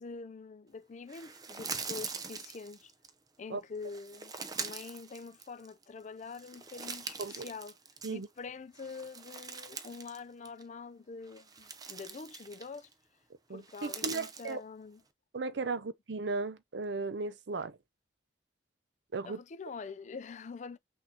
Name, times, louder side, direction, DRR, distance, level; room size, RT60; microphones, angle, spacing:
voice 1, 0.0-2.9 3.4-7.8 8.1-12.9 13.5-15.0 19.2-20.8, left 4 dB, 40° left, 0.4 m, -45 dB
sound 1, 1.1-3.1 3.8-5.8 6.2-8.4 8.7-10.2 10.5-10.6 11.2-12.9 13.6-14.5, right 5 dB, 20° right, 0.5 m, -42 dB
voice 2, 13.5-14.6 15.3-17.8 19.1-19.4, right 3 dB, 70° right, 0.5 m, -36 dB
6.0 x 2.6 x 2.7 m
head